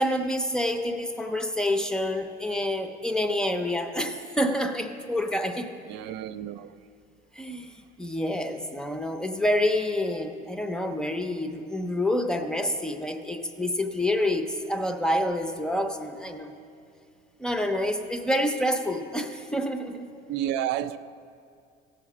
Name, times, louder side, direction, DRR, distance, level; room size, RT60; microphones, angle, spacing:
voice 1, 0.0-5.7 7.3-16.5 17.4-20.1, left 1 dB, 5° left, 0.5 m, -28 dB
voice 2, 5.9-6.8 20.3-21.0, right 11 dB, 70° right, 0.5 m, -30 dB
16.0 x 7.5 x 6.0 m
cardioid pair, 165°, 18 cm